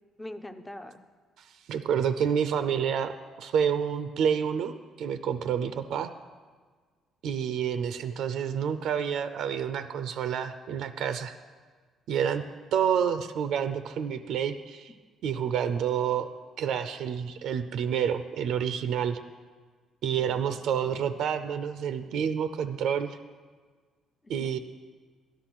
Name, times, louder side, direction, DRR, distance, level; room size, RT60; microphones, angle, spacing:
voice 1, 0.2-1.0 20.2-21.1 24.2-24.6, left 1 dB, 10° left, 9 dB, 0.5 m, -43 dB
voice 2, 1.4-6.1 7.2-11.3 12.1-12.4 12.7-14.9 15.2-16.3 16.6-19.2 20.0-23.2 24.3-24.6, right 8 dB, 60° right, 11 dB, 0.5 m, -29 dB
13.0 x 10.0 x 6.1 m, 1.5 s
cardioid pair, 175°, 0 cm